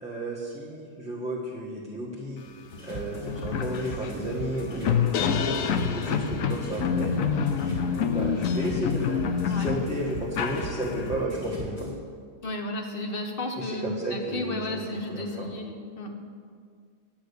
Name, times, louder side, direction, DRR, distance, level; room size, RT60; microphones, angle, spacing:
voice 1, 0.0-2.4 2.8-7.1 7.6-11.9 13.6-15.5, right 1 dB, 5° right, -5 dB, 1.3 m, -33 dB
sound 1, 2.7-2.8 3.2-11.2, left 7 dB, 85° left, 1.1 m, -27 dB
sound 2, 2.7-11.9, equal, 30° left, 2.7 m, -38 dB
voice 2, 12.4-16.1, left 2 dB, 45° left, 3 dB, 1.4 m, -33 dB
9.6 x 8.9 x 6.8 m, 2.1 s
omnidirectional pair, 1.4 m